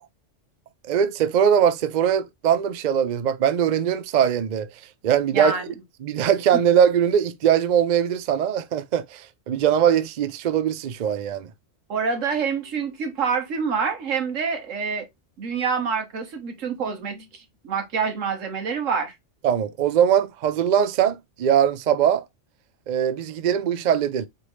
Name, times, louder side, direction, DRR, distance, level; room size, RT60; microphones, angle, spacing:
voice 1, 0.8-4.7 5.0-5.5 6.0-11.5 19.4-22.2 22.9-24.3, right 9 dB, 55° right, 0.5 m, -21 dB
voice 2, 5.3-5.7 6.5-6.6 11.9-15.0 15.4-19.1, right 5 dB, 80° right, 1.5 m, -26 dB
4.4 x 3.4 x 3.1 m
omnidirectional pair, 1.3 m